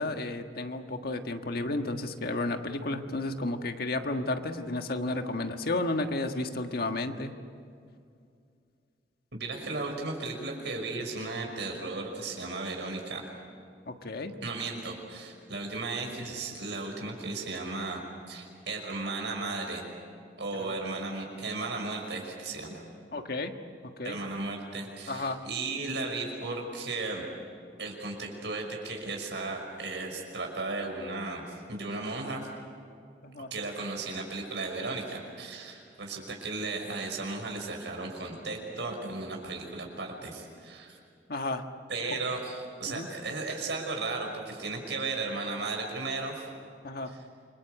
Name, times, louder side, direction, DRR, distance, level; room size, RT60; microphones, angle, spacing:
voice 1, 0.0-7.3 13.9-14.3 23.1-23.5 24.0-24.2 25.1-25.4 33.2-33.5 41.3-41.6 42.9-43.1 46.8-47.1, left 2 dB, 60° left, 6 dB, 1.6 m, -32 dB
voice 2, 9.3-13.2 14.4-18.0 18.3-19.8 20.4-22.8 24.0-27.2 27.8-32.5 33.5-41.0 41.9-46.4 47.1-47.2, right 3 dB, 80° right, 1 dB, 5.7 m, -35 dB
28.5 x 23.0 x 8.1 m, 2.4 s
head